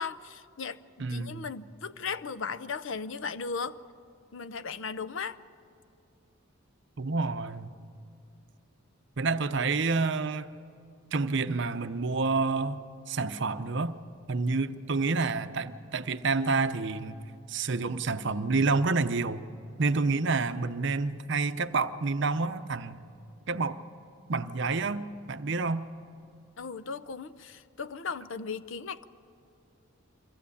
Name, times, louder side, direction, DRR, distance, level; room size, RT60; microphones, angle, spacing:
voice 1, 0.0-3.8 4.3-5.4 26.6-29.1, left 5 dB, 60° left, 0.6 m, -37 dB
voice 2, 1.0-1.5 7.0-7.7 9.2-10.5 11.1-14.0 14.3-17.2 17.5-19.4 19.8-23.0 23.5-23.8 24.3-25.9, right 3 dB, 55° right, 0.7 m, -28 dB
23.5 x 15.0 x 8.4 m
head